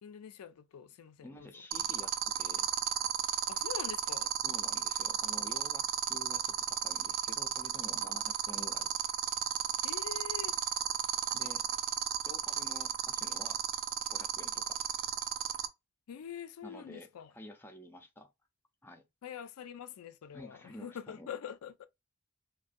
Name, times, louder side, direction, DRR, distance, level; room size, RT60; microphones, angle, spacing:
voice 1, 0.0-1.5 3.5-4.3 9.8-10.6 16.1-17.3 19.2-21.8, left 8 dB, 85° left, 0.4 m, -45 dB
voice 2, 1.2-2.7 4.4-8.9 11.3-11.7 12.3-13.6 14.1-14.8 16.6-17.1 17.3-18.3 18.8-19.0 20.3-21.3, left 1 dB, 10° left, 0.4 m, -50 dB
sound 1, 1.7-15.7, right 11 dB, 65° right, 0.4 m, -32 dB
2.5 x 2.2 x 2.5 m
head